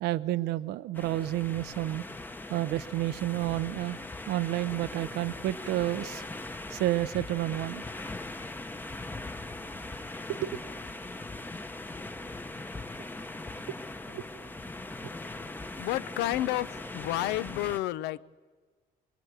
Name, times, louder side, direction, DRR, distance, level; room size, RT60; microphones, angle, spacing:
voice 1, 0.0-2.0 2.5-4.0 4.3-6.2 6.7-7.8 10.3-10.6 14.1-14.2, right 15 dB, 80° right, 15 dB, 0.6 m, -30 dB
sound 1, 0.9-17.8, left 2 dB, 10° left, 0.8 m, -40 dB
voice 2, 15.8-18.4, left 15 dB, 85° left, 16 dB, 0.6 m, -31 dB
23.0 x 23.0 x 8.2 m, 1.5 s
cardioid pair, 110°, 17 cm